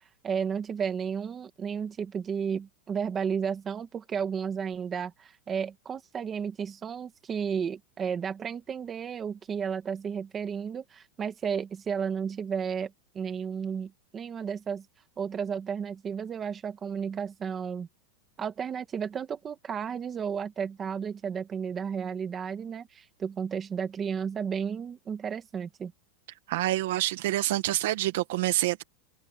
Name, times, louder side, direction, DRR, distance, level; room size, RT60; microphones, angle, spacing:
voice 1, 0.2-14.9 15.2-17.9 18.4-25.9, right 7 dB, 15° right, 1.8 m, -33 dB
voice 2, 26.5-28.8, right 16 dB, 55° right, 1.2 m, -27 dB
supercardioid pair, 180°, 0 cm